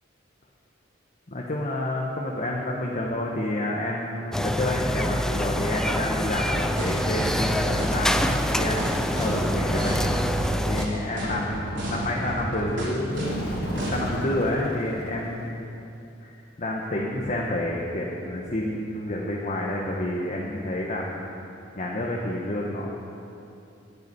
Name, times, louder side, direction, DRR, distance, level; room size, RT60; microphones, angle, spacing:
voice 1, 1.3-10.0 10.7-13.3 13.7-15.8 16.2-21.2 21.8-23.0, left 1 dB, 40° left, -2 dB, 1.0 m, -29 dB
sound 1, 4.3-10.9, equal, 5° left, 0.4 m, -26 dB
sound 2, 6.3-14.2, right 1 dB, 65° right, 3.6 m, -31 dB
Bird, 8.8-10.2 13.1-15.6, left 1 dB, 55° left, 1.7 m, -36 dB
9.7 x 8.2 x 9.4 m, 2.8 s
head